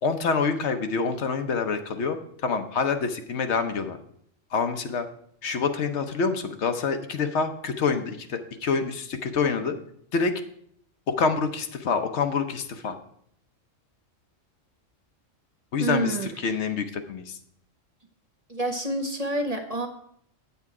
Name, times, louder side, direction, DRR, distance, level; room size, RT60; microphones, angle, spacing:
voice 1, 0.0-2.2 2.4-4.0 4.5-5.1 5.4-9.8 10.1-10.3 11.1-13.0 15.7-17.4, left 5 dB, 65° left, 8 dB, 1.0 m, -26 dB
voice 2, 15.8-16.5 18.5-19.9, right 2 dB, 35° right, 4 dB, 0.7 m, -28 dB
8.2 x 8.0 x 4.7 m, 0.67 s
omnidirectional pair, 1.3 m